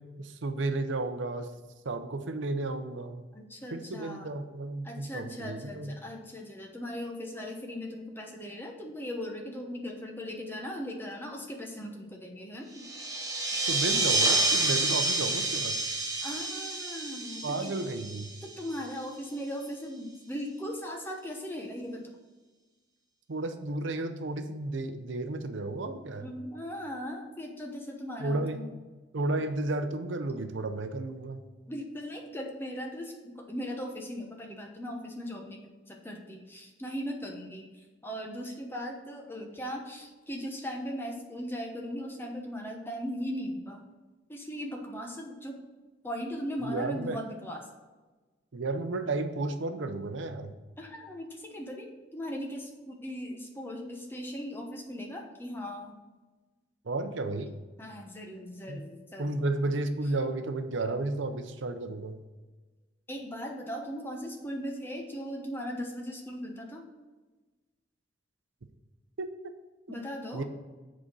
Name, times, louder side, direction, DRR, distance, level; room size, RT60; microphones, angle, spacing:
voice 1, 0.2-1.5 1.8-3.2 3.7-5.9 13.7-15.8 17.4-18.3 23.3-26.3 28.2-28.6 29.1-31.4 46.6-47.2 48.5-50.5 56.9-57.5 58.7-58.8 59.2-62.2 69.2-69.3 69.9-70.0 70.3-70.4, right 2 dB, 80° right, 8 dB, 0.6 m, -33 dB
voice 2, 3.3-4.3 4.8-12.7 16.2-17.7 18.4-22.1 26.2-28.7 31.7-37.7 38.0-43.8 44.3-45.6 46.0-47.7 50.8-55.9 57.8-59.3 63.1-66.8 69.9-70.4, equal, 10° left, 1 dB, 0.9 m, -38 dB
sound 1, 12.8-18.9, right 2 dB, 20° right, 0.8 m, -29 dB
7.6 x 4.2 x 6.2 m, 1.2 s
head